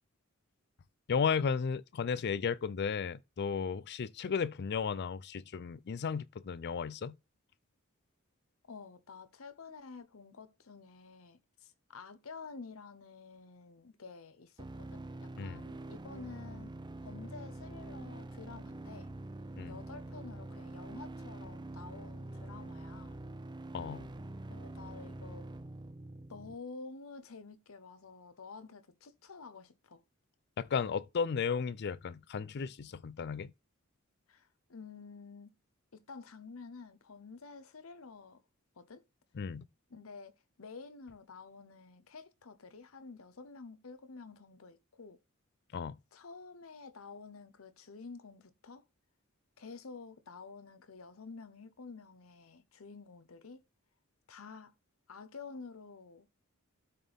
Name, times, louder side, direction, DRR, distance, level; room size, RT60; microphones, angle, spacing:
voice 1, 1.1-7.1 15.4-15.7 19.6-19.8 23.7-24.1 30.6-33.5 39.3-39.7 45.7-46.0, left 6 dB, 50° left, 0.4 m, -34 dB
voice 2, 8.7-16.7 17.0-19.1 19.7-23.2 24.5-25.5 26.3-30.0 34.3-35.5 35.9-38.4 38.8-39.0 39.9-45.2 46.1-48.8 49.6-53.6 54.3-54.7 55.1-56.3, left 4 dB, 80° left, 0.9 m, -50 dB
sound 1, 14.6-26.6, right 2 dB, 20° right, 0.5 m, -45 dB
12.5 x 4.3 x 3.5 m
head